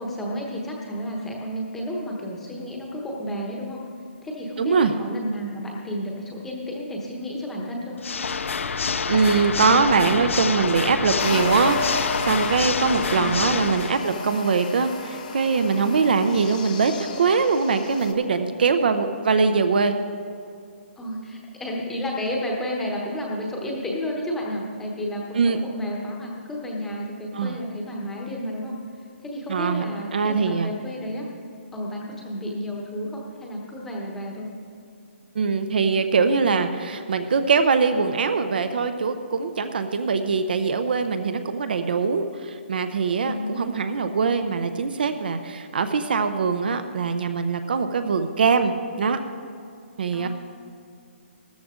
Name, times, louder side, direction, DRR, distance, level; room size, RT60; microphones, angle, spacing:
voice 1, 0.0-3.8 4.2-8.0 12.9-13.4 18.4-18.5 21.0-28.7 29.2-31.2 31.7-34.5 43.2-43.7 50.1-50.3, equal, 5° left, -2 dB, 1.0 m, -31 dB
voice 2, 4.6-4.9 9.1-20.0 25.3-25.6 27.3-27.6 29.5-29.8 30.1-30.7 35.3-49.2 50.0-50.3, right 5 dB, 50° right, 9 dB, 0.6 m, -22 dB
Water / Mechanisms, 8.0-14.0, left 5 dB, 85° left, 0.6 m, -27 dB
sound 1, 11.2-18.1, left 4 dB, 35° left, 0.9 m, -33 dB
13.5 x 13.5 x 3.7 m, 2.5 s
hypercardioid pair, 175°, 7 cm